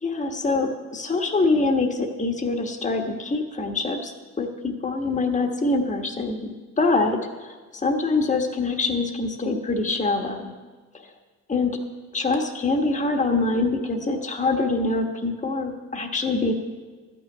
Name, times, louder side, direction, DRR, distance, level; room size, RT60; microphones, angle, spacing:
voice 1, 0.0-4.1 4.4-10.5 10.9-11.1 11.5-11.7 12.1-16.5, left 3 dB, 25° left, 3 dB, 1.3 m, -24 dB
13.0 x 6.1 x 8.9 m, 1.4 s
cardioid pair, 90°, 30 cm